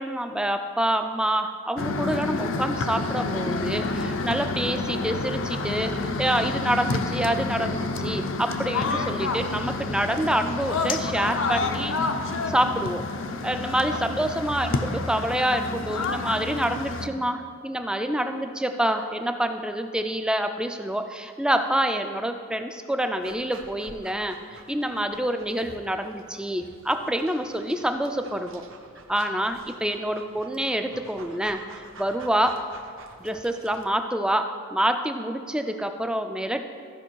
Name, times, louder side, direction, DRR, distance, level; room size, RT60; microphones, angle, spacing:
voice 1, 0.0-12.0 12.5-13.0 13.4-28.6 29.1-32.6 33.2-36.6, right 1 dB, 5° right, 7 dB, 0.3 m, -27 dB
sound 1, 1.8-17.1, left 3 dB, 60° left, 0.6 m, -29 dB
Dog, 23.2-33.9, right 3 dB, 65° right, 0.8 m, -48 dB
14.0 x 5.3 x 4.6 m, 2.2 s
head